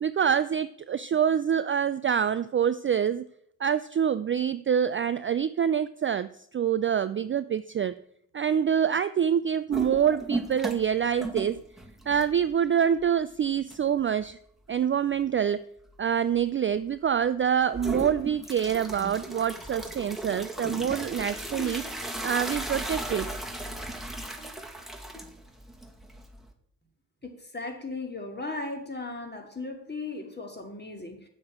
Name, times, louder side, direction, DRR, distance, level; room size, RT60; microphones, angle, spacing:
voice 1, 0.0-3.3 3.6-7.9 8.3-11.6 12.1-14.4 14.7-15.6 16.0-21.8 22.2-23.4, right 8 dB, 30° right, 13 dB, 0.4 m, -26 dB
sound 1, 9.7-10.9 11.2-12.5 13.0-13.1 13.7-13.8 17.7-26.5, right 1 dB, ahead, 1.9 m, -36 dB
voice 2, 27.2-31.2, left 3 dB, 20° left, 4 dB, 2.5 m, -37 dB
8.0 x 7.2 x 6.1 m, 0.71 s
hypercardioid pair, 45°, 45 cm